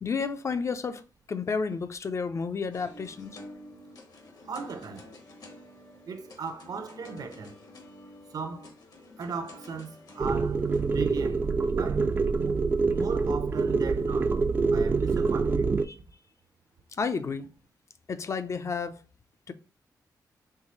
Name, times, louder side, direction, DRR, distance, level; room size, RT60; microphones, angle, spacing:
voice 1, 0.0-1.0 1.3-3.4 15.9-16.0 17.0-17.5 18.1-19.0 19.5-19.6, left 5 dB, 45° left, 0.5 m, -31 dB
sound 1, 2.7-11.0, left 1 dB, 60° left, 1.1 m, -49 dB
voice 2, 4.4-5.1 6.1-7.6 8.3-8.7 9.2-12.1 12.4-14.4 14.7-15.7, right 5 dB, 60° right, 0.7 m, -37 dB
sound 2, 10.2-15.9, right 4 dB, 30° right, 0.3 m, -26 dB
4.6 x 3.2 x 3.0 m
cardioid pair, 100°, 7 cm